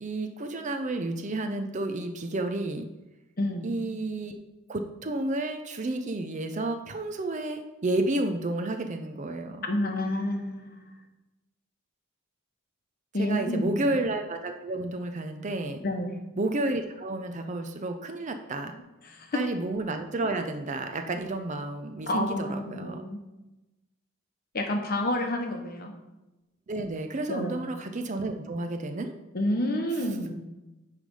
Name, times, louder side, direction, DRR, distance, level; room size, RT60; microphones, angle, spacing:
voice 1, 0.0-2.8 3.6-4.4 4.7-9.7 13.2-15.8 16.4-18.7 19.3-23.0 26.7-29.1 29.9-30.1, right 2 dB, 35° right, 6 dB, 0.5 m, -31 dB
voice 2, 9.7-10.8 13.1-13.8 15.8-16.2 19.0-19.4 22.1-23.2 24.5-25.9 27.3-27.6 29.3-30.4, left 1 dB, 45° left, 3 dB, 1.0 m, -29 dB
9.6 x 3.3 x 5.4 m, 1.0 s
head